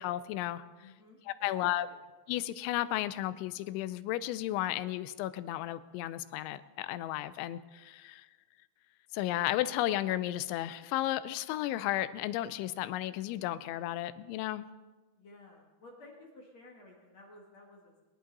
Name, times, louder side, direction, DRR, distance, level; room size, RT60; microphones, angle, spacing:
voice 1, 0.0-0.9 1.3-1.9 2.3-8.3 9.1-14.7, left 14 dB, 85° left, 15 dB, 2.9 m, -33 dB
voice 2, 0.8-2.0 15.2-18.0, left 2 dB, 50° left, -1 dB, 2.3 m, -54 dB
23.0 x 11.0 x 4.1 m, 1.2 s
omnidirectional pair, 5.3 m